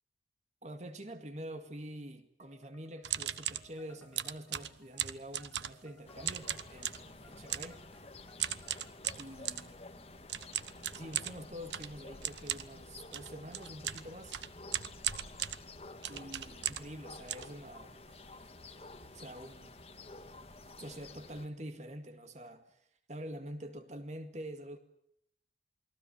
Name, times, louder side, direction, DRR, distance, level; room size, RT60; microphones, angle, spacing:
voice 1, 0.6-7.8 9.2-10.1 10.9-14.4 16.1-18.0 19.1-19.8 20.8-24.8, right 1 dB, 40° right, 2.1 m, -46 dB
sound 1, 2.4-9.6, left 1 dB, 15° left, 3.6 m, -64 dB
sound 2, 3.0-3.7 4.2-5.9 6.2-7.1 7.5-7.8 8.4-9.7 10.3-17.0 17.3-18.1 18.6-18.7 18.9-19.2 19.5-19.7 20.2-20.3 20.6-20.9, right 11 dB, 80° right, 1.3 m, -38 dB
sound 3, 6.1-21.5, left 2 dB, 35° left, 1.8 m, -51 dB
29.0 x 22.0 x 7.1 m
head